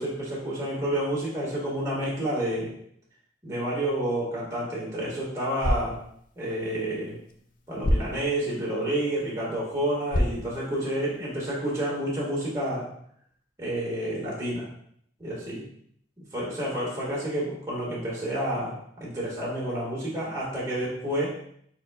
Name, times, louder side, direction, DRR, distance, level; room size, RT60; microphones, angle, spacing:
voice 1, 0.0-2.7 3.4-6.0 6.4-7.1 7.7-12.9 13.6-14.7 15.2-15.7 16.2-21.4, right 1 dB, 15° right, -7 dB, 1.7 m, -29 dB
sound 1, 5.4-11.4, left 1 dB, 45° left, 0.5 m, -32 dB
4.5 x 4.4 x 2.3 m, 0.67 s
head